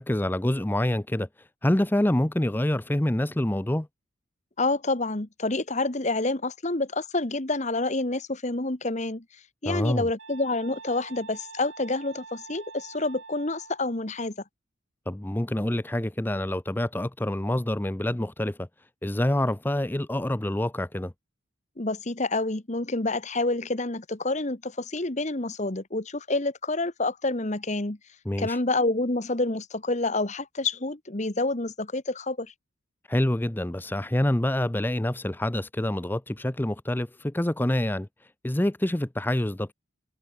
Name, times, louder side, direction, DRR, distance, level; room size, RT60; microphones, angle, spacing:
voice 1, 0.0-3.9 9.7-10.1 15.1-18.7 19.0-21.1 28.3-28.6 33.1-39.7, left 1 dB, 10° left, 0.5 m, -27 dB
voice 2, 4.6-9.2 9.6-14.3 21.8-28.0 28.4-32.5, left 2 dB, 35° left, 1.4 m, -28 dB
sound 1, 10.2-13.8, right 4 dB, 70° right, 6.2 m, -45 dB
head